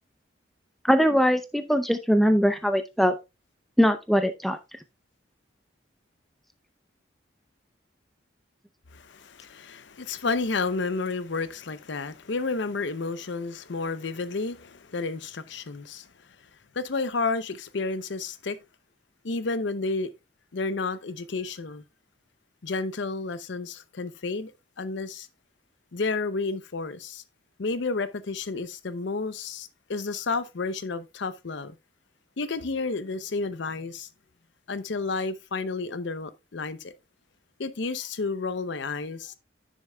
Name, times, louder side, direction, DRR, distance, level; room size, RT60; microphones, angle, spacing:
voice 1, 0.8-3.2 3.8-4.6, equal, ahead, 0.5 m, -21 dB
voice 2, 8.9-16.1 16.7-18.6 19.2-20.1 20.5-21.8 22.6-24.5 24.8-25.3 25.9-27.2 27.6-31.8 32.4-34.1 34.7-36.9 37.6-39.3, left 3 dB, 65° left, 0.6 m, -31 dB
10.0 x 6.5 x 2.3 m
head